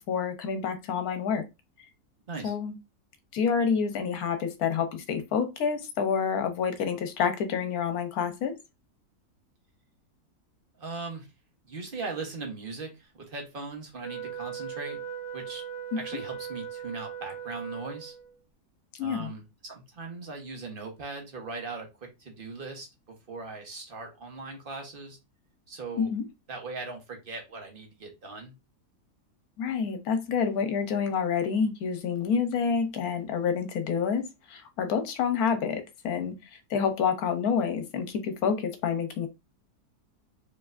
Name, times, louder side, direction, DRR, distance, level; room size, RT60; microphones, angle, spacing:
voice 1, 0.1-1.5 2.4-2.7 3.3-8.5 15.9-16.0 18.9-19.3 26.0-26.3 29.6-39.3, left 6 dB, 70° left, 1.2 m, -28 dB
voice 2, 10.8-11.3 11.6-15.0 15.3-15.6 15.9-18.1 19.0-25.2 25.7-26.1 26.5-28.5, right 3 dB, 40° right, 1.1 m, -39 dB
Wind instrument woodwind instrument, 14.0-18.4, right 8 dB, 15° right, 1.9 m, -39 dB
4.7 x 3.2 x 2.5 m
omnidirectional pair, 1.7 m